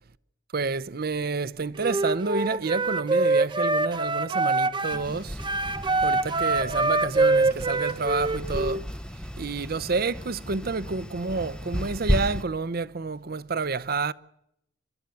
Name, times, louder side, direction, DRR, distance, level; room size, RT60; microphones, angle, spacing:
voice 1, 0.5-5.4 6.0-8.8 9.4-14.1, right 4 dB, 50° right, 0.7 m, -29 dB
Wind instrument woodwind instrument, 1.8-5.0 5.4-8.8, right 3 dB, 25° right, 1.0 m, -24 dB
sound 1, 4.9-12.4, equal, 5° left, 0.7 m, -34 dB
29.5 x 13.0 x 7.0 m
head